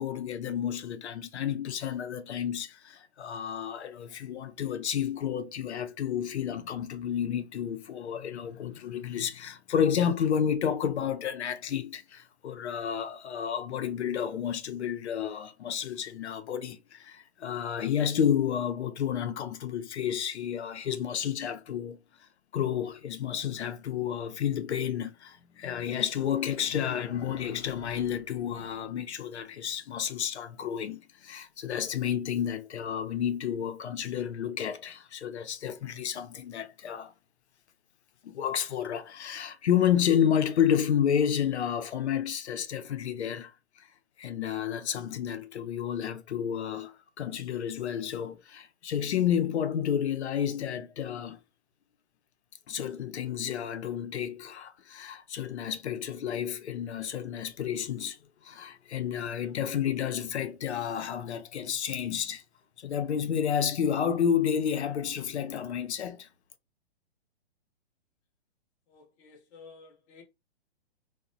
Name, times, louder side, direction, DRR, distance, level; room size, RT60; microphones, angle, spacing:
voice 1, 0.0-22.0 22.5-37.1 38.2-43.5 44.2-51.4 52.7-58.2 58.4-62.4 62.8-66.3, left 9 dB, 90° left, 0.5 m, -30 dB
voice 2, 68.9-70.2, left 4 dB, 20° left, 0.4 m, -52 dB
2.7 x 2.1 x 2.5 m
hypercardioid pair, 140°, 32 cm